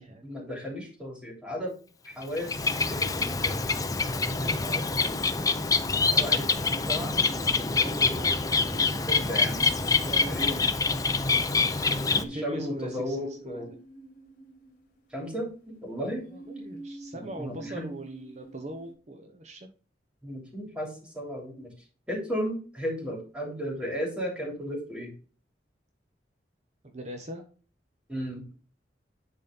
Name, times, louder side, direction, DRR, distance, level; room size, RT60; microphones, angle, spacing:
voice 1, 0.2-1.7 2.0-2.5 2.9-3.6 4.4-5.2 6.1-7.2 8.7-9.6 10.2-10.7 12.1-13.7 15.1-16.3 17.1-17.9 20.2-21.7 22.1-25.1 28.1-28.4, equal, 5° right, -1 dB, 3.1 m, -35 dB
Bird, 2.2-12.2, left 4 dB, 20° left, 0.6 m, -26 dB
voice 2, 7.8-8.4 8.8-9.0 9.9-10.5 10.9-11.0 11.9-13.6 16.3-19.7 26.8-27.4, right 1 dB, 40° right, 4 dB, 0.9 m, -41 dB
sound 1, 8.7-10.9 11.7-15.4 16.2-18.9, right 2 dB, 50° left, 2.9 m, -47 dB
10.5 x 4.2 x 3.8 m, 0.37 s
head